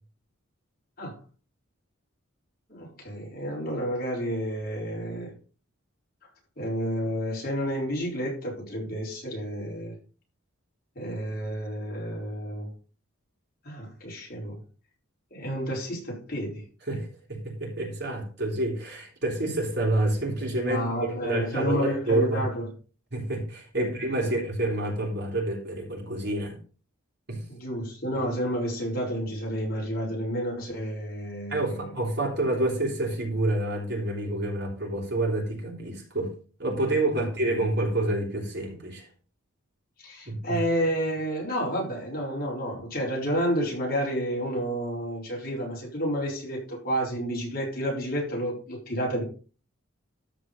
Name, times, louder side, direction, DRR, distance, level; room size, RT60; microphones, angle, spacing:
voice 1, 2.7-5.3 6.6-9.9 10.9-12.7 13.6-14.6 15.3-16.6 20.6-22.6 23.8-23.9 24.2-24.3 27.5-31.9 40.0-49.2, equal, 45° left, 4.9 m, -30 dB
voice 2, 16.9-20.8 21.2-22.5 23.1-26.6 27.3-27.4 31.5-36.3 36.6-39.1 40.3-40.6, right 2 dB, 50° right, 3.6 m, -28 dB
13.5 x 4.9 x 5.4 m
head